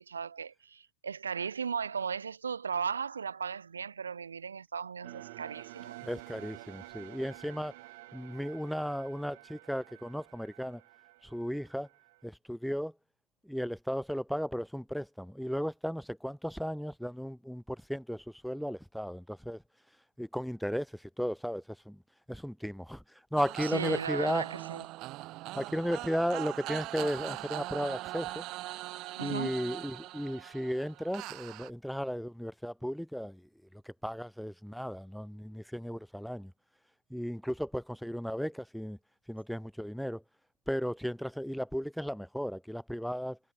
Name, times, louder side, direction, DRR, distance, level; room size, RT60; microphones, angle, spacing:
voice 1, 0.0-6.0 23.6-24.8 29.2-29.5, right 6 dB, 85° right, 5.1 m, -36 dB
sound 1, 5.0-12.3, right 20 dB, 50° right, 5.2 m, -50 dB
voice 2, 6.0-7.7 8.1-10.8 11.2-11.9 12.2-12.9 13.4-19.6 20.2-22.0 22.3-23.0 23.3-24.4 25.6-28.4 29.2-36.5 37.1-39.0 39.3-40.2 40.7-43.4, equal, ahead, 2.0 m, -35 dB
sound 2, 23.4-31.7, right 18 dB, 35° right, 5.4 m, -41 dB
hypercardioid pair, 120°, 0 cm